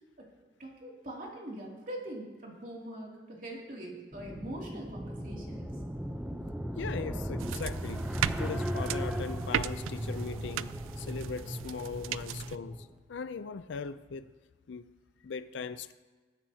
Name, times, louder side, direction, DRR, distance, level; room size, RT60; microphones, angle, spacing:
voice 1, 0.6-5.7, right 1 dB, 45° right, 2.6 m, -43 dB
sound 1, 4.1-12.9, equal, 5° right, 0.5 m, -37 dB
voice 2, 6.7-14.3 14.7-14.9 15.2-15.9, left 5 dB, 65° left, 0.4 m, -39 dB
sound 2, 7.4-12.6, right 10 dB, 90° right, 0.3 m, -37 dB
20.5 x 8.7 x 2.8 m
head